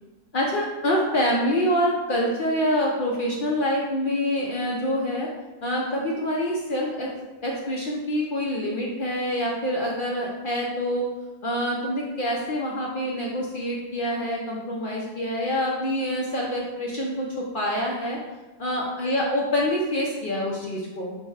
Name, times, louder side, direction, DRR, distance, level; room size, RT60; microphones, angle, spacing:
voice 1, 0.3-5.3 5.6-7.1 7.4-11.1 11.4-17.3 17.5-18.2 18.6-21.2, equal, 70° left, -3 dB, 0.5 m, -26 dB
5.2 x 2.1 x 4.7 m, 1.2 s
omnidirectional pair, 1.6 m